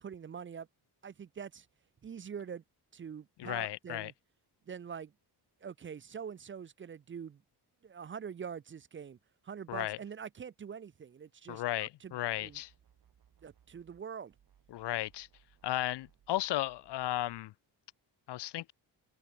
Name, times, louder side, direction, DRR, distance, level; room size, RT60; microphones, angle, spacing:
voice 1, 0.0-0.7 1.0-1.7 2.0-2.6 2.9-4.1 4.7-5.1 5.6-7.4 7.8-9.2 9.4-12.6 13.4-14.3, right 7 dB, 30° right, 0.6 m, -44 dB
voice 2, 3.4-4.1 9.7-10.0 11.5-12.7 14.7-15.3 15.6-17.5 18.3-18.7, left 15 dB, 80° left, 0.8 m, -35 dB
sound 1, 12.4-14.0 14.3-17.4, right 9 dB, 55° right, 7.3 m, -67 dB
wide cardioid pair, 165°, 41 cm